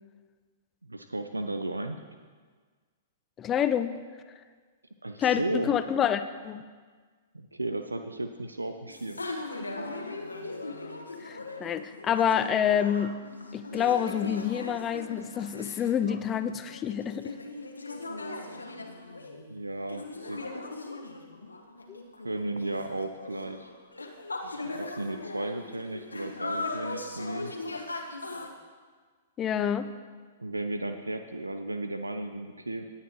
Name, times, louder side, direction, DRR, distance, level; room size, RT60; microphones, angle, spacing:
voice 1, 0.9-2.0 5.0-5.8 7.3-9.2 19.5-20.4 22.2-23.7 24.7-27.5 30.4-32.9, right 2 dB, 85° right, 7 dB, 0.6 m, -34 dB
voice 2, 3.4-3.9 5.2-6.6 11.2-13.2 13.5-17.3 21.9-22.0 29.4-29.9, left 9 dB, 25° left, 11 dB, 0.6 m, -27 dB
sound 1, 8.9-28.5, left 2 dB, 85° left, 1.2 m, -39 dB
20.0 x 8.5 x 3.1 m, 1.5 s
figure-of-eight pair, 110°, 0 cm